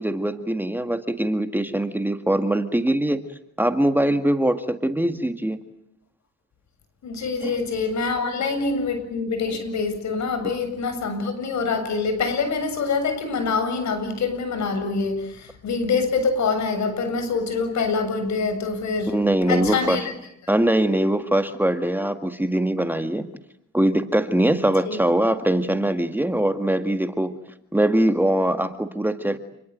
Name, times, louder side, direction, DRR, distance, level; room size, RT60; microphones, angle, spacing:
voice 1, 0.0-3.2 3.6-5.6 7.4-7.6 19.1-20.0 20.5-23.3 23.7-27.3 27.7-29.4, right 1 dB, 5° right, 8 dB, 2.0 m, -22 dB
voice 2, 7.0-19.2 19.5-20.1 24.9-25.0, left 4 dB, 65° left, 10 dB, 7.5 m, -25 dB
29.5 x 21.5 x 9.0 m, 0.77 s
cardioid pair, 90°, 30 cm